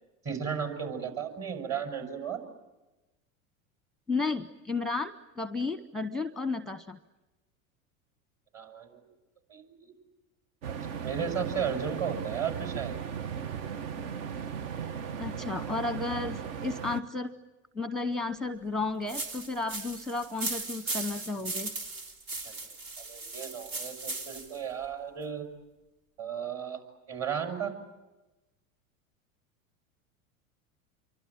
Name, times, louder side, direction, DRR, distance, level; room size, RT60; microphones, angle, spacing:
voice 1, 0.2-2.4 8.5-9.0 9.5-9.9 10.7-12.9 23.0-25.5 26.2-26.8 27.1-27.7, right 7 dB, 35° right, 5 dB, 6.3 m, -34 dB
voice 2, 4.1-7.0 15.2-17.3 17.7-21.7, left 3 dB, ahead, 12 dB, 0.8 m, -33 dB
sound 1, 10.6-17.0, right 7 dB, 65° right, 1.3 m, -37 dB
sound 2, 19.1-24.6, right 3 dB, 80° right, 3.9 m, -37 dB
27.5 x 24.0 x 8.9 m, 1.1 s
hypercardioid pair, 90°, 42 cm